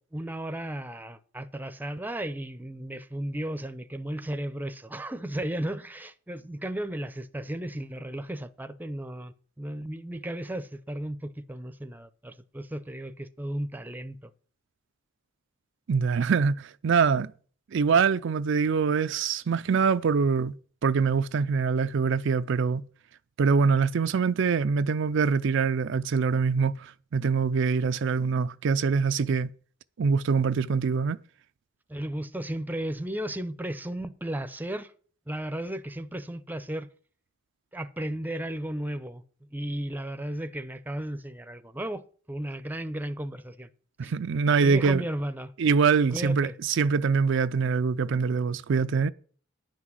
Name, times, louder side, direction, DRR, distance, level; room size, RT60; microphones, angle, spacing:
voice 1, 0.0-14.3 31.9-34.9 35.3-36.9 37.7-39.2 39.5-43.7 44.0-44.1 44.6-45.5 46.1-46.6, right 1 dB, 10° right, 0.7 m, -35 dB
voice 2, 15.9-17.3 17.7-20.5 20.8-22.8 23.4-29.5 30.0-31.2 44.0-45.0 45.6-49.1, right 5 dB, 65° right, 0.4 m, -24 dB
10.0 x 6.2 x 7.5 m
head